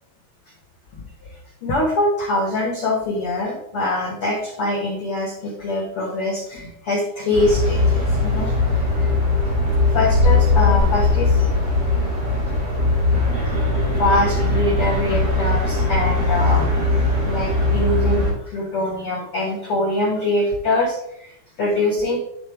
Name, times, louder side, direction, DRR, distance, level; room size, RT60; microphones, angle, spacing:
voice 1, 1.2-9.1 9.8-11.6 13.1-13.4 14.0-16.7 17.2-22.2, left 2 dB, 75° left, -1 dB, 1.3 m, -24 dB
sound 1, 7.3-18.3, left 2 dB, 60° right, 4.6 m, -19 dB
11.0 x 3.9 x 3.4 m, 0.76 s
omnidirectional pair, 4.5 m